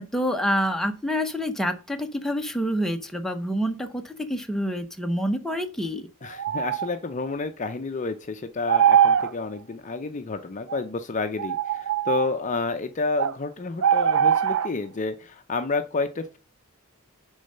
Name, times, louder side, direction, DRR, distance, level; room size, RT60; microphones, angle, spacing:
voice 1, 0.0-6.1, equal, ahead, 4 dB, 0.8 m, -27 dB
voice 2, 6.2-16.4, left 3 dB, 35° left, 8 dB, 0.5 m, -30 dB
sound 1, 6.2-6.9 8.7-9.3 10.7-10.8 11.4-12.3 13.2-13.3 13.8-14.7, right 8 dB, 60° right, 0.5 m, -21 dB
9.8 x 3.9 x 5.5 m, 0.33 s
head